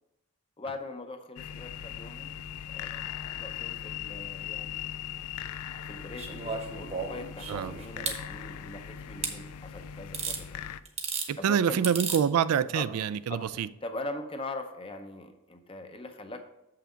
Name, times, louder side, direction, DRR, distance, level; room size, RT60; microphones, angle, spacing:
voice 1, 0.6-2.3 2.7-4.9 5.8-10.7 11.4-11.9 12.7-12.8 13.4-13.5 13.8-16.4, left 2 dB, 25° left, 0.6 m, -41 dB
sound 1, 1.4-10.8, left 9 dB, 80° left, 0.3 m, -39 dB
sound 2, 6.2-8.2 9.2-9.4 10.1-10.4 10.9-11.3 11.8-12.2 13.5-13.6, right 5 dB, 30° right, 0.9 m, -34 dB
voice 2, 11.3-13.7, right 8 dB, 80° right, 0.3 m, -26 dB
7.2 x 5.8 x 5.1 m
head